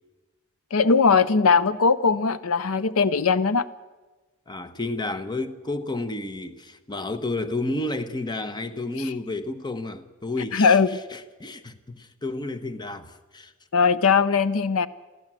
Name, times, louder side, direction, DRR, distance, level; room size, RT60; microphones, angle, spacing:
voice 1, 0.7-3.7 10.5-10.9 13.7-14.9, left 5 dB, 75° left, 0.6 m, -20 dB
voice 2, 4.5-10.8 11.1-13.5, left 2 dB, 20° left, 1.0 m, -31 dB
23.0 x 15.0 x 7.5 m
head